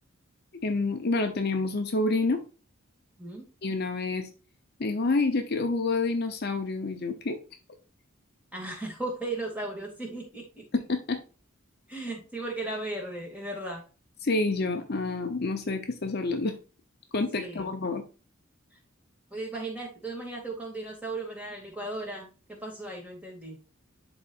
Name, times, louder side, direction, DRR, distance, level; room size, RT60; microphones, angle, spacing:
voice 1, 0.6-2.4 3.6-4.3 4.8-7.4 10.7-11.2 14.2-16.5 17.1-18.0, left 3 dB, 50° left, 6 dB, 0.7 m, -28 dB
voice 2, 8.5-10.6 11.9-13.8 17.3-17.7 19.3-23.6, right 2 dB, 5° right, -1 dB, 2.3 m, -36 dB
11.0 x 3.9 x 2.5 m, 0.34 s
head